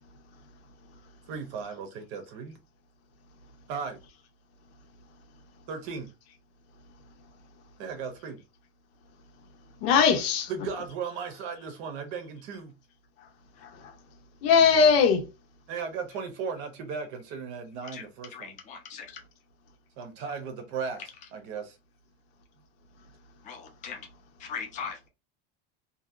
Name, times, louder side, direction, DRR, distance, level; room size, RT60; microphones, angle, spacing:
voice 1, 1.3-2.5 3.7-4.0 5.7-6.1 7.8-8.4 10.5-12.7 15.7-18.6 20.0-21.0 21.3-21.8, right 5 dB, 40° right, 0.6 m, -36 dB
voice 2, 9.8-10.8 13.6-13.9 14.4-15.2, left 6 dB, 90° left, 1.0 m, -21 dB
voice 3, 17.8-19.1 23.4-24.1 24.4-25.1, left 6 dB, 25° left, 0.6 m, -40 dB
2.7 x 2.6 x 2.4 m
cardioid pair, 180°, 30 cm